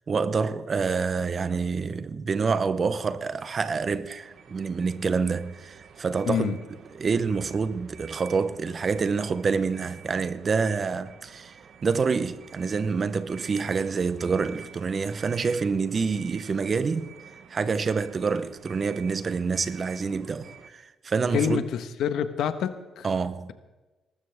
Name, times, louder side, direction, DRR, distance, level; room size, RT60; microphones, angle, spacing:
voice 1, 0.1-6.6 6.9-11.6 11.8-17.1 17.5-21.6 23.0-23.5, right 5 dB, 40° right, 0.9 m, -27 dB
sound 1, 4.2-20.7, right 7 dB, 60° right, 1.2 m, -49 dB
voice 2, 6.3-6.6 21.3-23.1, left 8 dB, 75° left, 1.3 m, -27 dB
19.0 x 14.5 x 3.5 m
cardioid pair, 90°, 0 cm